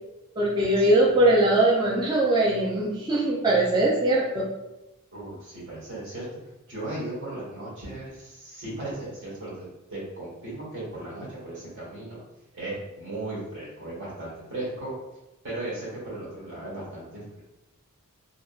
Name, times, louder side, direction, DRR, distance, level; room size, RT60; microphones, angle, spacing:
voice 1, 0.4-4.4, right 1 dB, 20° right, -6 dB, 0.4 m, -21 dB
voice 2, 5.1-6.3 6.7-12.2 12.5-14.9 15.4-17.4, right 2 dB, 60° right, -6 dB, 1.3 m, -36 dB
2.8 x 2.4 x 2.3 m, 0.97 s
head